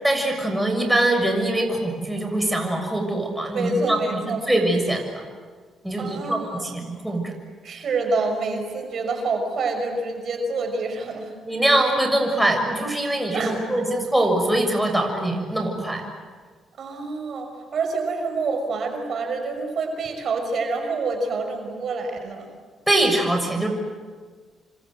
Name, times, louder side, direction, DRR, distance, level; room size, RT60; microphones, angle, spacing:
voice 1, 0.0-4.2 4.5-5.2 5.8-7.2 11.4-16.0 22.9-23.7, right 1 dB, 5° right, 3 dB, 6.8 m, -23 dB
voice 2, 3.5-4.4 6.0-6.7 7.6-11.3 13.3-13.8 16.8-22.5, right 3 dB, 55° right, 4 dB, 5.7 m, -27 dB
28.0 x 25.5 x 7.9 m, 1.5 s
cardioid pair, 90°, 0 cm